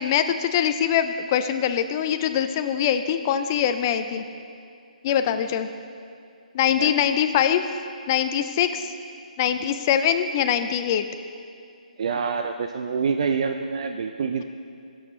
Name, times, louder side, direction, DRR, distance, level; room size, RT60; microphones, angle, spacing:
voice 1, 0.0-4.2 5.0-5.7 6.5-7.6 8.1-8.9 9.4-11.1, left 9 dB, 25° left, 8 dB, 0.3 m, -23 dB
voice 2, 12.0-14.4, right 5 dB, 50° right, 5 dB, 0.4 m, -26 dB
16.0 x 6.2 x 3.1 m, 2.4 s
hypercardioid pair, 160°, 4 cm